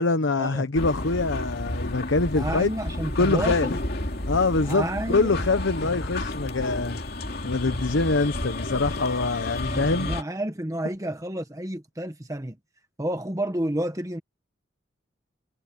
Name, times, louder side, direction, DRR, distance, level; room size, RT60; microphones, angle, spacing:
voice 1, 0.0-2.7 3.2-3.8 4.3-7.0 7.4-10.1, left 3 dB, 85° left, 1.0 m, -24 dB
sound 1, 0.7-10.2, left 1 dB, 55° left, 2.5 m, -31 dB
voice 2, 2.3-3.7 4.6-5.4 5.8-6.0 9.6-12.6 13.0-14.2, right 1 dB, 15° right, 1.2 m, -30 dB
head